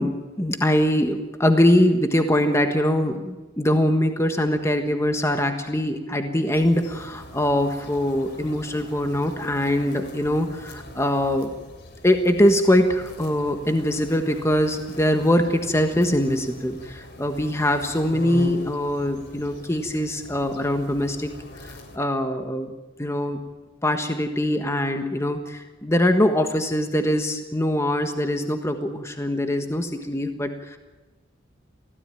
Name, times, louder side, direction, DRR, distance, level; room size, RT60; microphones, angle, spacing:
voice 1, 0.0-11.5 12.0-21.3 21.6-22.7 23.0-23.4 23.8-30.8, left 1 dB, 15° left, 6 dB, 1.4 m, -22 dB
sound 1, 6.5-22.0, left 1 dB, 55° left, 3.4 m, -42 dB
24.0 x 16.5 x 9.2 m, 1.2 s
head